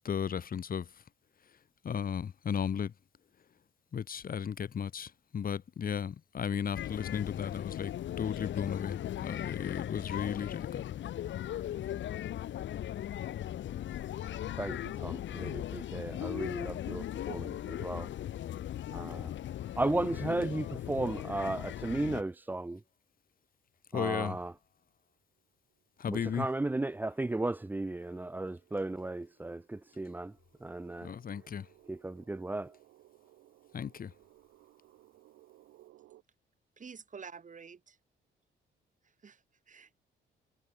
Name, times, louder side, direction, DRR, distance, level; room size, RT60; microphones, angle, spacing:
voice 1, 0.0-0.9 1.8-2.9 3.9-10.8 23.9-24.4 26.0-26.5 31.0-31.6 33.7-34.1, left 7 dB, 45° left, 1.4 m, -35 dB
sound 1, 6.8-22.2, left 11 dB, 70° left, 1.5 m, -38 dB
voice 2, 14.6-18.1 18.9-19.3 19.8-22.8 23.9-24.5 26.1-31.1 31.8-32.8, right 2 dB, 10° right, 0.5 m, -35 dB
sound 2, 24.8-24.9 25.4-36.2, right 15 dB, 90° right, 7.6 m, -63 dB
voice 3, 36.8-38.0 39.0-40.0, right 6 dB, 40° right, 3.6 m, -49 dB
cardioid pair, 90°, 20 cm